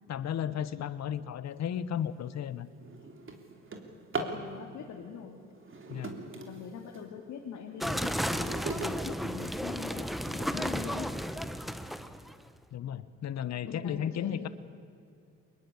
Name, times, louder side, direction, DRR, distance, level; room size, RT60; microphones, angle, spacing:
voice 1, 0.1-2.7 5.9-6.2 12.7-14.5, left 9 dB, 60° left, 14 dB, 1.1 m, -34 dB
Drawer open or close, 1.8-2.0 2.5-4.5 5.5-7.1 7.6-10.1 10.7-10.8 11.3-11.4 11.8-12.2, right 3 dB, 40° right, 3.4 m, -41 dB
voice 2, 4.2-5.4 6.5-11.1 13.7-14.5, left 7 dB, 75° left, 0 dB, 2.6 m, -43 dB
sound 1, 7.8-12.3, equal, ahead, 1.2 m, -33 dB
24.0 x 21.0 x 8.3 m, 2.5 s
cardioid pair, 90°, 30 cm